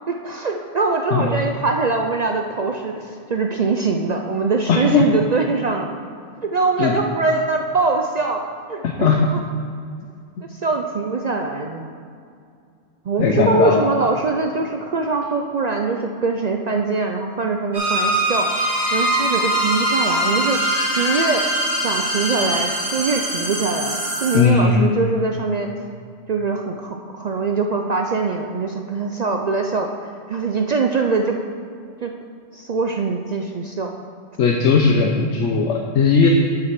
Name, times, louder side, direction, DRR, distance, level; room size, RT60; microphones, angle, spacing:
voice 1, 0.1-5.9 6.4-8.4 8.7-9.4 10.5-12.0 13.0-21.5 21.7-25.7 26.3-31.4 32.0-32.1 32.5-34.0, right 4 dB, 65° right, 3 dB, 0.4 m, -23 dB
voice 2, 4.7-5.0 6.8-6.9 9.0-9.2 13.2-13.8 24.3-24.9 34.4-36.3, left 5 dB, 70° left, 1 dB, 1.0 m, -17 dB
sound 1, 17.7-24.4, right 1 dB, 30° right, 2.4 m, -22 dB
7.8 x 5.8 x 5.9 m, 2.3 s
omnidirectional pair, 1.3 m